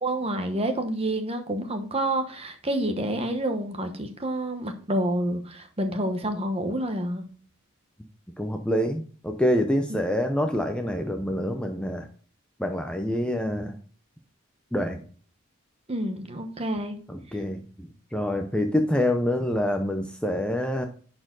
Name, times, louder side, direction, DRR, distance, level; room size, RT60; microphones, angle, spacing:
voice 1, 0.0-7.2 9.9-10.0 13.3-13.6 15.9-17.0, right 1 dB, 30° right, 6 dB, 1.1 m, -28 dB
voice 2, 8.4-12.1 12.6-13.7 14.7-15.0 17.1-20.9, left 1 dB, 5° left, 4 dB, 0.6 m, -26 dB
11.0 x 4.4 x 3.9 m, 0.42 s
head